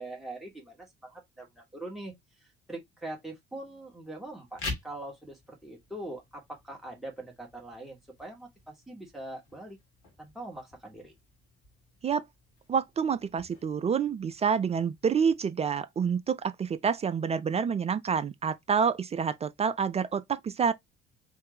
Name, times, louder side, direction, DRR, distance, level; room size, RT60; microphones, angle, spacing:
voice 1, 0.0-2.1 2.7-9.8 10.2-11.1, right 1 dB, ahead, 2.0 m, -42 dB
sound 1, 4.4-15.4, left 3 dB, 65° left, 1.5 m, -47 dB
voice 2, 12.7-20.7, right 6 dB, 20° right, 0.4 m, -28 dB
3.6 x 2.6 x 3.8 m
figure-of-eight pair, 50°, 30 cm